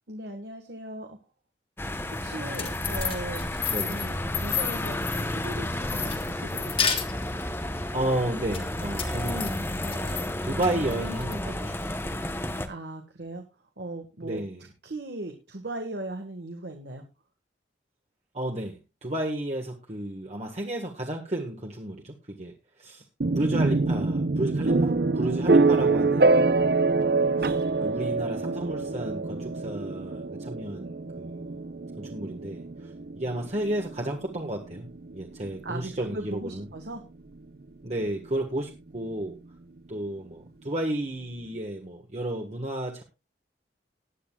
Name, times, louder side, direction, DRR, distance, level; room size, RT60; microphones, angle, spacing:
voice 1, 0.1-1.2 2.2-3.5 3.8-4.1 4.4-6.7 12.7-13.4 13.8-14.4 14.8-17.0 27.1-27.3 35.6-37.0, right 2 dB, 75° right, 4 dB, 1.6 m, -38 dB
sound 1, 1.8-12.7, left 1 dB, 15° left, 1.0 m, -32 dB
sound 2, 2.3-5.5 5.9-7.4 8.5-10.3 10.6-11.3, left 7 dB, 30° left, 1.5 m, -31 dB
voice 2, 3.7-4.0 7.9-12.0 14.2-14.6 18.3-23.0 23.3-26.4 27.4-27.5 27.8-31.6 32.0-34.9 35.1-36.7 37.8-39.4 39.9-43.0, right 1 dB, 40° right, 1 dB, 1.5 m, -32 dB
sound 3, 23.2-37.0, right 3 dB, 60° right, 0.7 m, -25 dB
19.5 x 9.7 x 2.4 m, 0.26 s
head